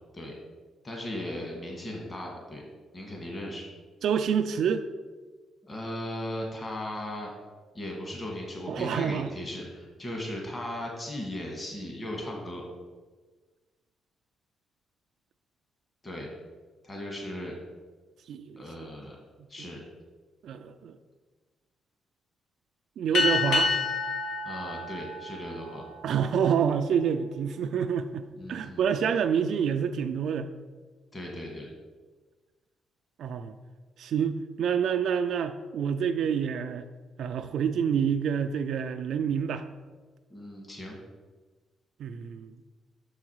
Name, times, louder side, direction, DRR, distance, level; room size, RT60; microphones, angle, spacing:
voice 1, 0.8-2.6 2.9-3.7 5.6-7.3 7.7-12.6 16.0-16.3 16.8-17.5 18.5-19.2 19.5-19.8 24.4-25.9 28.3-28.8 31.1-31.7 40.3-41.0, left 1 dB, 25° left, 0 dB, 1.6 m, -37 dB
voice 2, 4.0-4.8 8.7-9.3 18.3-18.6 19.6-19.7 20.4-21.0 23.0-23.7 26.0-30.5 33.2-33.5 34.0-36.9 37.2-39.6 42.0-42.5, right 7 dB, 75° right, 7 dB, 0.3 m, -27 dB
sound 1, 23.1-26.1, left 3 dB, 80° left, 1.3 m, -28 dB
6.2 x 4.8 x 4.6 m, 1.3 s
cardioid pair, 105°, 0 cm